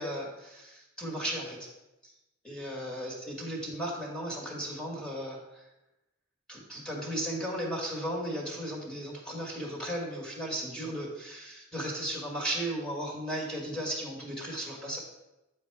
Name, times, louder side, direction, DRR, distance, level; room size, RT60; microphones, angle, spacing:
voice 1, 0.0-1.7 2.0-2.1 2.4-5.6 6.5-15.0, right 1 dB, 5° left, -3 dB, 1.9 m, -35 dB
9.4 x 4.3 x 4.7 m, 0.96 s
head